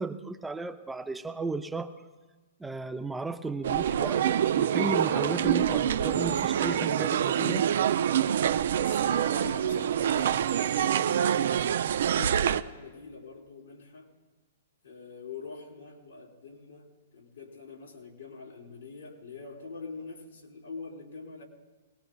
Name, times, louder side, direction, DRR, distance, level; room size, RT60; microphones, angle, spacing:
voice 1, 0.0-1.9 2.6-7.7, right 3 dB, 5° right, 7 dB, 0.5 m, -34 dB
sound 1, 3.6-12.6, right 9 dB, 65° right, 0.4 m, -26 dB
voice 2, 8.8-11.5 11.9-14.1 14.8-16.9 17.1-21.4, left 4 dB, 80° left, -2 dB, 3.8 m, -44 dB
22.0 x 19.0 x 2.3 m, 1.3 s
hypercardioid pair, 120°, 0 cm